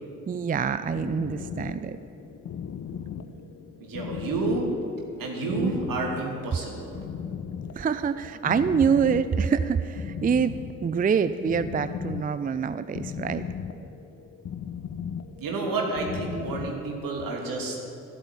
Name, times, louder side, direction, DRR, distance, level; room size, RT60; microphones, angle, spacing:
voice 1, 0.3-2.0 5.6-5.7 7.8-10.5 10.8-13.4, right 6 dB, 25° right, 13 dB, 0.5 m, -25 dB
sound 1, 0.6-17.2, left 7 dB, 45° left, 1.0 m, -38 dB
voice 2, 3.8-4.6 5.2-7.0 15.4-17.8, right 3 dB, 60° right, 1 dB, 2.9 m, -30 dB
13.0 x 8.9 x 9.8 m, 2.8 s
hypercardioid pair, 45°, 37 cm